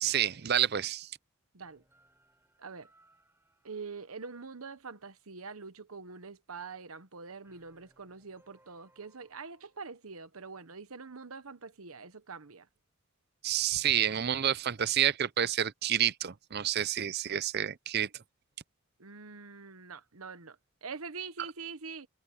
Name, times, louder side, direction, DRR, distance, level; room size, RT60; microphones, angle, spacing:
voice 1, 0.0-1.1 13.4-18.1, right 10 dB, 50° right, 0.6 m, -29 dB
sound 1, 1.6-5.2 7.4-9.8, right 1 dB, 10° right, 6.9 m, -69 dB
voice 2, 2.6-2.9 3.6-12.7 13.7-13.8 19.0-22.1, right 4 dB, 80° right, 1.2 m, -44 dB
head